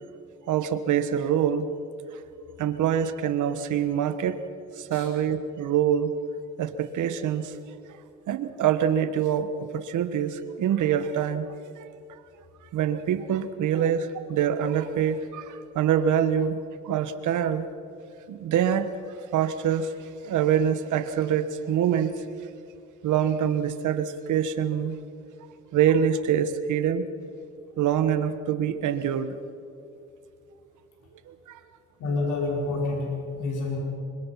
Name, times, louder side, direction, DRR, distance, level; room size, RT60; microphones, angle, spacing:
voice 1, 0.5-1.7 2.1-2.2 2.6-4.4 4.8-6.1 6.6-7.6 8.3-11.5 11.8-11.9 12.1-12.2 12.7-16.6 16.8-17.7 18.3-18.9 19.3-22.2 23.0-25.0 25.7-27.1 27.8-29.4 31.3-31.6, right 9 dB, 80° right, 11 dB, 1.4 m, -25 dB
voice 2, 32.0-33.8, left 3 dB, 75° left, -2 dB, 5.4 m, -28 dB
25.5 x 24.0 x 5.8 m, 2.6 s
cardioid pair, 90°, 30 cm